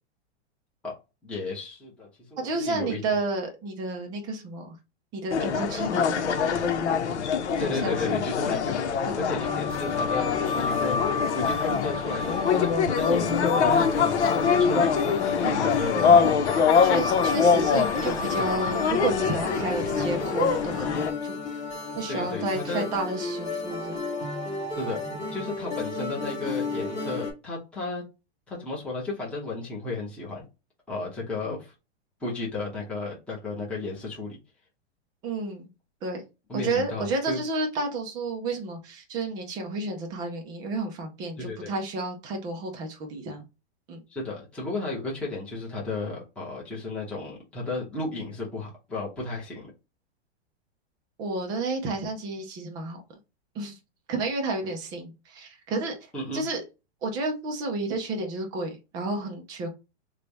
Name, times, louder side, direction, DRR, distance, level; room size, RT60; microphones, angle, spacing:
voice 1, 1.2-3.0 7.6-11.0 11.3-14.9 15.4-16.3 22.1-22.9 24.8-25.0 25.3-28.0 28.5-30.4 30.9-31.7 32.2-34.4 36.5-37.4 41.4-41.7 44.1-49.7 56.1-56.5, left 3 dB, 5° left, 0.9 m, -33 dB
voice 2, 2.4-4.7 5.1-6.8 7.6-8.6 9.0-9.4 15.4-15.7 16.8-21.4 22.0-24.0 35.2-35.7 36.0-36.2 36.5-43.4 43.9-44.0 51.2-53.0 53.6-53.8 54.1-56.0 56.3-56.6 57.0-59.7, right 2 dB, 10° right, 0.4 m, -31 dB
sound 1, 5.3-21.1, left 6 dB, 80° left, 0.8 m, -24 dB
sound 2, 9.4-27.3, left 4 dB, 20° left, 1.6 m, -32 dB
3.2 x 2.3 x 3.9 m
hypercardioid pair, 155°, 34 cm